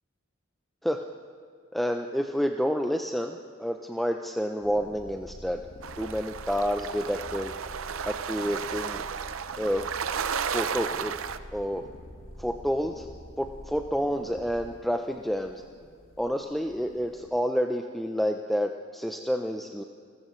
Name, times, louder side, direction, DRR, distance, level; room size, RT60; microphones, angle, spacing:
voice 1, 1.7-5.6 6.0-7.5 8.1-9.1 9.6-9.9 10.5-11.1 11.5-11.8 12.4-13.1 13.4-15.6 16.2-19.8, equal, ahead, 4 dB, 0.5 m, -29 dB
sound 1, 4.6-17.3, left 1 dB, 65° left, 1.6 m, -47 dB
sound 2, 5.8-11.4, right 7 dB, 80° right, 0.6 m, -33 dB
27.5 x 14.0 x 3.1 m, 2.2 s
head